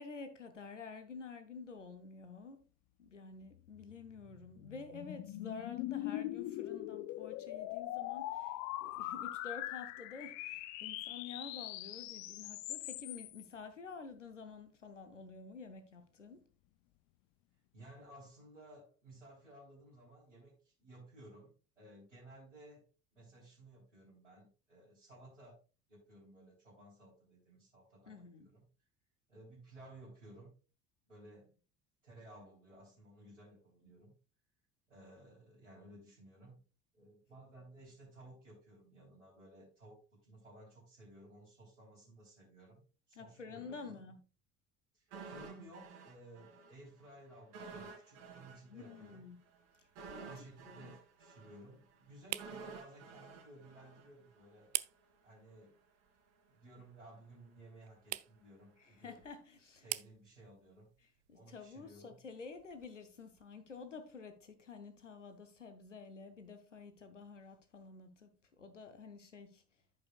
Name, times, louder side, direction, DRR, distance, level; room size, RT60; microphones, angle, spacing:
voice 1, 0.0-2.7 3.0-8.6 8.8-16.4 28.1-28.5 43.1-44.2 48.7-49.4 49.8-50.9 58.8-59.9 61.3-69.6, left 4 dB, 90° left, 0.8 m, -50 dB
sound 1, 3.7-13.5, left 15 dB, 50° left, 0.6 m, -42 dB
voice 2, 17.7-22.8 23.1-25.6 25.9-28.6 29.3-30.5 31.1-31.5 32.0-34.1 34.9-36.6 36.9-44.0 44.9-49.2 50.2-54.8 55.2-55.8 56.5-59.2 59.8-60.9 61.3-62.1, right 1 dB, 90° right, 3.8 m, -57 dB
sound 2, 45.1-46.7 47.0-47.1 47.5-54.6 54.9-55.0, right 4 dB, 65° right, 2.8 m, -51 dB
sound 3, 48.7-63.5, right 19 dB, 45° right, 0.5 m, -49 dB
14.5 x 5.5 x 2.3 m
figure-of-eight pair, 60°, 36 cm